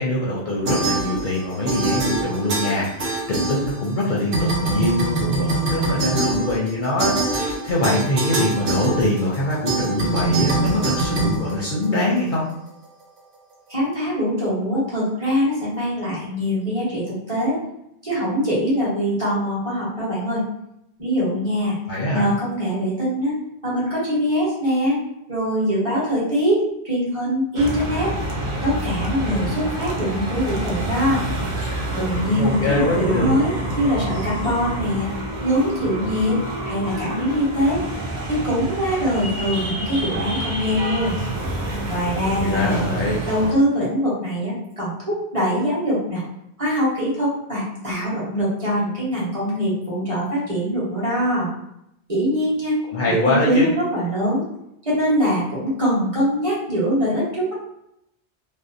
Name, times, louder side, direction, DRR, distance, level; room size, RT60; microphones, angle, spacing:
voice 1, 0.0-12.5 21.9-22.3 32.3-33.4 42.4-43.2 52.9-53.7, left 1 dB, 55° left, -5 dB, 0.6 m, -23 dB
sound 1, 0.7-1.4 1.7-4.0 4.3-12.2, right 2 dB, 75° right, 1.0 m, -24 dB
voice 2, 13.7-17.6 18.0-20.4 21.0-21.8 22.1-25.0 25.3-28.1 28.6-31.3 32.0-35.1 35.4-36.4 36.6-37.8 38.3-41.2 41.9-42.8 43.2-46.2 46.6-51.5 52.1-52.8 53.2-54.4 54.8-57.5, equal, 30° right, -8 dB, 1.0 m, -23 dB
sound 2, 27.5-43.5, right 1 dB, 55° right, 0.5 m, -28 dB
2.6 x 2.0 x 2.5 m, 0.79 s
omnidirectional pair, 1.1 m